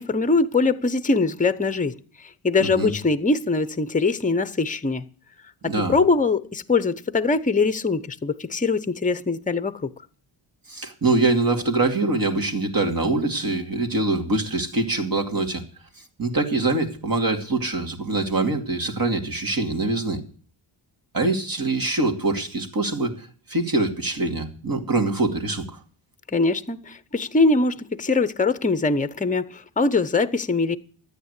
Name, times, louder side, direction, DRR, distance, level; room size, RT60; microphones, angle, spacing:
voice 1, 0.0-1.9 2.4-5.1 5.6-9.9 26.3-30.8, left 3 dB, 15° left, 0.8 m, -22 dB
voice 2, 2.6-2.9 5.6-6.0 10.7-15.6 16.2-20.2 21.1-25.8, right 3 dB, 45° right, 2.7 m, -24 dB
13.5 x 9.5 x 8.2 m
wide cardioid pair, 110°, 49 cm